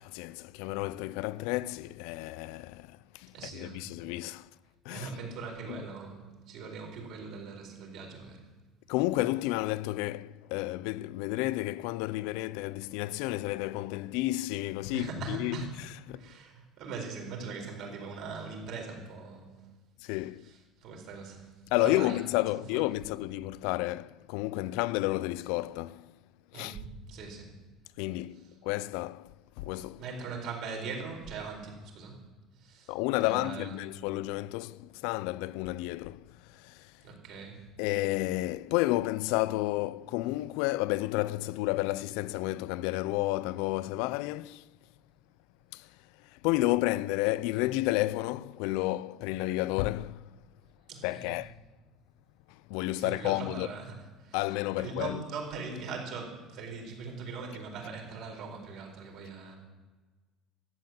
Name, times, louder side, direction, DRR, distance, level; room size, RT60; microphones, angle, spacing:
voice 1, 0.0-4.5 4.8-5.1 5.7-5.8 8.9-16.3 20.0-20.5 21.7-26.1 26.5-26.8 28.0-30.0 32.9-37.0 37.8-44.7 45.7-50.3 51.0-51.6 52.5-53.7 54.3-55.2, left 18 dB, 80° left, 0.4 m, -31 dB
voice 2, 3.3-3.9 4.9-8.4 14.9-15.7 16.1-19.6 20.4-20.5 20.8-21.5 21.8-22.2 22.5-22.9 26.5-27.5 30.0-32.2 32.6-33.7 37.0-37.6 50.9-51.3 53.0-53.9 54.2-54.4 54.8-59.6, right 4 dB, 55° right, 4.4 m, -41 dB
13.5 x 7.8 x 9.1 m
cardioid pair, 150°, 0 cm